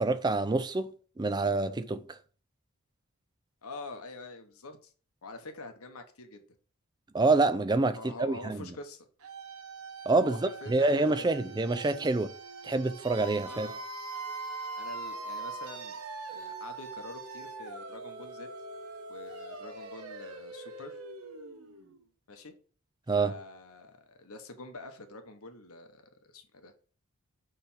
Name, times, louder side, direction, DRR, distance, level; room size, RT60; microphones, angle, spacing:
voice 1, 0.0-2.0 7.1-8.7 10.1-10.4 10.7-12.3 12.6-13.7 23.1-23.3, right 3 dB, 20° right, 0.4 m, -27 dB
voice 2, 3.6-4.9 5.2-6.4 7.9-9.1 10.2-11.2 13.4-13.8 14.8-16.0 16.3-18.5 19.1-21.0 22.3-22.5 23.2-26.0 26.3-26.7, left 2 dB, 75° left, 1.2 m, -46 dB
sound 1, 9.2-22.0, right 3 dB, 80° right, 1.0 m, -42 dB
6.6 x 3.4 x 5.7 m
head